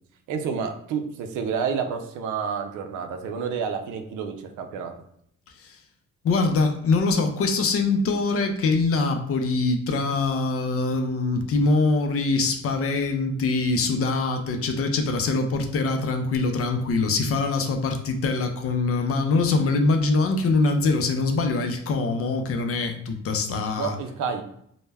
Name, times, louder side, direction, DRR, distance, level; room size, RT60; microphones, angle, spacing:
voice 1, 0.3-4.9 23.8-24.4, right 6 dB, 90° right, 5 dB, 0.5 m, -29 dB
voice 2, 6.2-24.0, left 3 dB, 50° left, 6 dB, 0.5 m, -23 dB
2.1 x 2.1 x 3.3 m, 0.70 s
cardioid pair, 90°, 30 cm